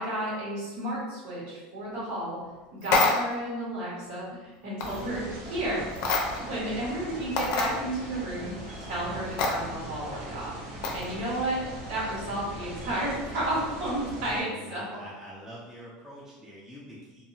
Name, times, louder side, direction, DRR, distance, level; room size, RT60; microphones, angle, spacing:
voice 1, 0.0-2.4 2.7-8.5 8.8-11.6 11.9-14.8, right 1 dB, 70° right, -6 dB, 1.4 m, -32 dB
sound 1, 2.8-3.4 4.8-5.0 6.0-6.5 6.9-7.0 7.4-7.7 9.4-9.5 10.8-11.1, left 3 dB, 60° left, 0.5 m, -26 dB
sound 2, 4.8-14.4, right 1 dB, 90° right, 1.2 m, -40 dB
voice 2, 14.5-17.2, equal, 10° right, -7 dB, 0.6 m, -45 dB
2.7 x 2.2 x 2.8 m, 1.1 s
supercardioid pair, 150°, 4 cm